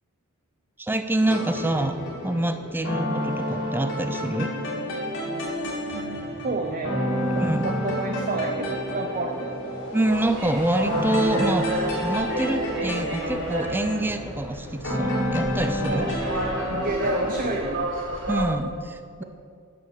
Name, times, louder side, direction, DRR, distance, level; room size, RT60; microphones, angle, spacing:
voice 1, 0.8-2.0 2.2-4.5 7.4-7.7 9.9-11.7 12.0-16.1 18.3-19.2, right 1 dB, 10° right, 9 dB, 0.5 m, -26 dB
sound 1, 1.2-17.6, equal, 55° left, 2.7 m, -30 dB
voice 2, 5.9-9.5 15.9-16.2 16.7-18.0, right 2 dB, 40° right, 3 dB, 0.8 m, -30 dB
sound 2, 10.0-18.5, right 1 dB, 60° right, 2.7 m, -31 dB
10.0 x 7.6 x 6.9 m, 2.2 s
head